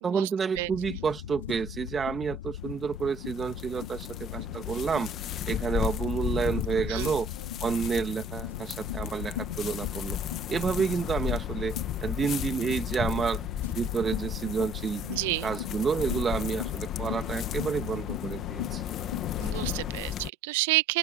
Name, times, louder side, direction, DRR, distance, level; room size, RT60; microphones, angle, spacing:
voice 1, 0.0-5.1 5.5-7.3 7.6-10.2 10.5-15.0 15.4-18.8, right 6 dB, 20° right, 2.6 m, -30 dB
sound 1, 0.6-19.9, left 13 dB, 65° left, 2.6 m, -39 dB
sound 2, 2.6-20.3, left 11 dB, 30° left, 2.2 m, -35 dB
voice 2, 6.7-7.1 15.1-15.5 19.4-21.0, right 23 dB, 55° right, 1.3 m, -30 dB
open air
hypercardioid pair, 100°, 0 cm